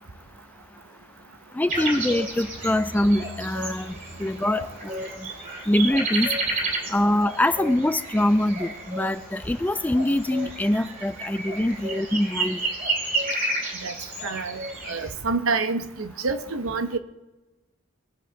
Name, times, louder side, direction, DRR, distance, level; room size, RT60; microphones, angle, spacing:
voice 1, 1.5-5.3 5.7-6.3 6.9-12.6, left 1 dB, 10° left, 0.3 m, -24 dB
sound 1, 1.7-15.1, right 2 dB, 40° right, 2.5 m, -31 dB
voice 2, 14.2-14.6 14.9-17.0, right 4 dB, 75° right, 0.8 m, -27 dB
20.0 x 7.4 x 3.9 m
head